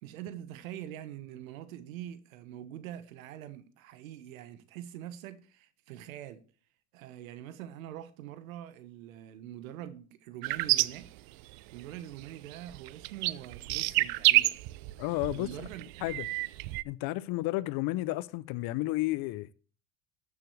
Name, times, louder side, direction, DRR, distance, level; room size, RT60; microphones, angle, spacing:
voice 1, 0.0-6.4 6.9-11.1 11.7-14.6 15.3-16.1, right 11 dB, 85° right, 1.1 m, -44 dB
sound 1, 10.4-11.9 12.2-16.8, right 20 dB, 60° right, 0.6 m, -29 dB
voice 2, 15.0-15.7 16.0-16.3 16.8-19.5, left 18 dB, 60° left, 0.7 m, -32 dB
13.5 x 7.3 x 3.2 m
hypercardioid pair, 80°, 40 cm